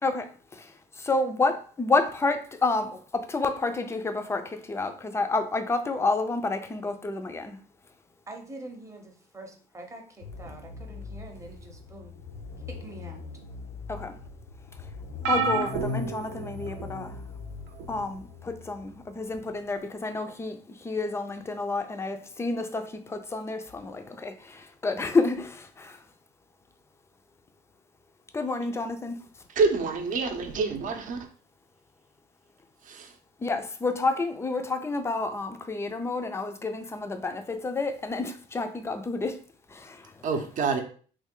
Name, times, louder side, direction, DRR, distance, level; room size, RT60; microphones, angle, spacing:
voice 1, 0.0-7.6 13.9-14.2 14.8-14.9 15.3-17.2 17.9-26.0 28.3-29.2 33.4-39.4 39.7-40.3, left 3 dB, 15° left, 0.4 m, -30 dB
voice 2, 8.3-12.2 12.7-13.2, right 2 dB, 15° right, 0.8 m, -45 dB
sound 1, 10.2-19.6, left 5 dB, 90° left, 0.6 m, -42 dB
sound 2, 15.2-17.0 17.8-18.0 19.3-19.4, right 3 dB, 90° right, 0.6 m, -29 dB
voice 3, 29.6-31.3 32.9-33.1 40.2-40.8, right 4 dB, 50° right, 0.7 m, -27 dB
3.2 x 2.3 x 3.7 m
cardioid pair, 110°, 17 cm